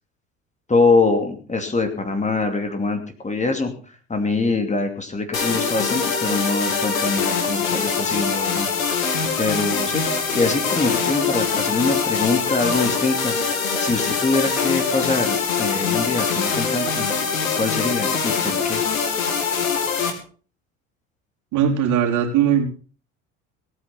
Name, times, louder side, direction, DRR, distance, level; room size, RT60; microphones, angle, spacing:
voice 1, 0.7-3.7 4.1-8.7 9.4-10.0 10.3-13.3 13.8-17.1 17.6-18.8, left 3 dB, 15° left, 4 dB, 2.8 m, -23 dB
sound 1, 5.3-20.1, left 5 dB, 75° left, 2.7 m, -23 dB
voice 2, 21.5-22.7, right 8 dB, 45° right, 1 dB, 4.0 m, -19 dB
17.5 x 9.7 x 5.8 m, 0.40 s
figure-of-eight pair, 65°, 41 cm